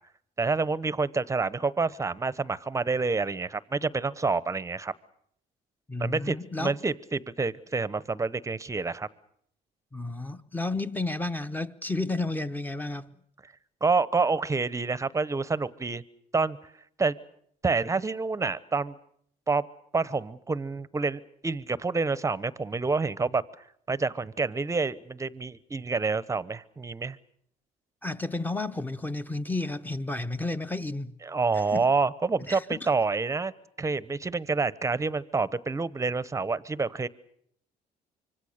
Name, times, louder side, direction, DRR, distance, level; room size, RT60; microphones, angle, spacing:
voice 1, 0.4-4.9 6.0-9.1 13.8-16.0 16.3-16.6 17.0-17.2 17.6-19.0 19.5-19.6 19.9-23.4 23.9-27.2 31.3-33.5 33.8-37.1, right 4 dB, 20° right, 0.9 m, -28 dB
voice 2, 5.9-6.7 9.9-13.1 28.0-31.2 31.7-31.9 32.4-32.9, left 2 dB, 10° left, 1.0 m, -32 dB
25.5 x 24.5 x 6.6 m
cardioid pair, 110°, 17 cm